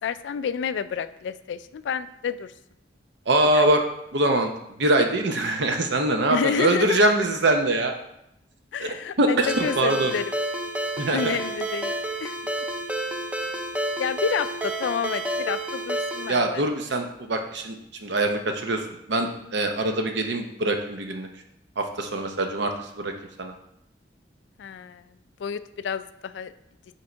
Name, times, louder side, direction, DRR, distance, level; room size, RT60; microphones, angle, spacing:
voice 1, 0.0-2.5 3.5-3.7 6.3-7.1 8.7-10.3 11.1-12.4 14.0-16.6 24.6-25.0 25.4-26.5, left 7 dB, 80° left, 13 dB, 0.3 m, -29 dB
voice 2, 3.3-3.8 4.1-7.9 8.8-10.1 11.0-11.2 16.3-17.8 18.0-18.8 19.1-21.3 21.8-23.1 23.4-23.5, right 2 dB, 70° right, 5 dB, 0.7 m, -23 dB
Ringtone, 9.5-16.3, right 1 dB, 10° right, 0.5 m, -30 dB
5.5 x 4.5 x 3.9 m, 0.80 s
head